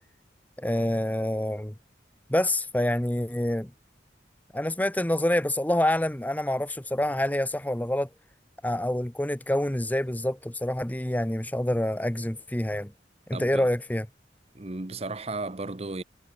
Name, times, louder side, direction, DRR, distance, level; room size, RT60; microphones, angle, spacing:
voice 1, 0.6-1.7 2.3-3.7 4.5-8.1 8.6-12.9 13.3-14.1, left 1 dB, 10° left, 0.8 m, -27 dB
voice 2, 13.3-13.7 14.5-16.0, right 2 dB, 35° right, 1.0 m, -34 dB
head